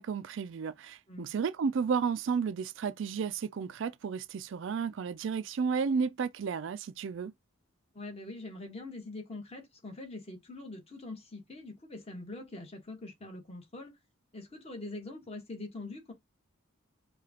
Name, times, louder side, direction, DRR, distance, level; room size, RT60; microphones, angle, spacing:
voice 1, 0.0-7.3, right 6 dB, 60° right, 0.3 m, -32 dB
voice 2, 7.9-14.0 14.3-16.1, left 2 dB, 30° left, 1.4 m, -43 dB
4.8 x 2.3 x 2.9 m
head